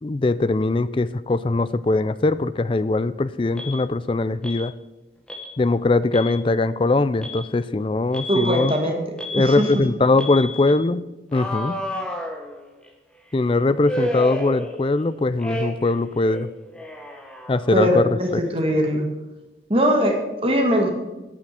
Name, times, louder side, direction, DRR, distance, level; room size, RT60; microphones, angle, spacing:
voice 1, 0.0-4.7 5.6-8.7 9.3-11.0 11.3-11.8 13.3-16.5 17.5-18.4, left 2 dB, 30° left, 15 dB, 0.4 m, -21 dB
Alarm, 3.6-3.8 4.4-4.7 5.3-5.5 6.0-6.4 7.2-7.4 8.1-8.7 9.2-9.7 10.2-10.7 11.3-12.9 13.8-15.0 15.4-15.9 16.2-17.9, left 1 dB, 5° left, 1.2 m, -31 dB
voice 2, 8.3-9.0 9.4-9.8 17.7-19.1 19.7-20.9, equal, 30° right, 2 dB, 1.8 m, -21 dB
8.7 x 7.5 x 7.7 m, 1.1 s
head